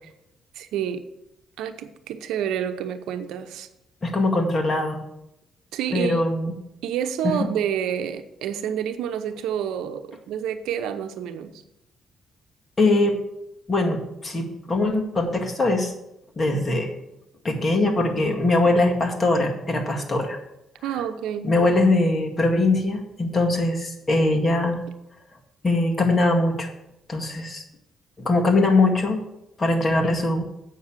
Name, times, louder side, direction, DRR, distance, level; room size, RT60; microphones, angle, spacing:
voice 1, 0.5-1.1 1.6-3.7 5.7-6.2 6.8-11.6 20.8-21.5, right 9 dB, 90° right, 9 dB, 0.8 m, -28 dB
voice 2, 4.0-5.0 5.9-6.5 7.2-7.4 12.8-13.2 13.7-15.9 16.4-16.9 17.4-20.4 21.4-24.8 25.6-26.7 27.1-27.6 28.2-29.2 29.6-30.5, left 2 dB, 30° left, 1 dB, 2.0 m, -21 dB
8.3 x 6.4 x 7.3 m, 0.86 s
cardioid pair, 90°, 0 cm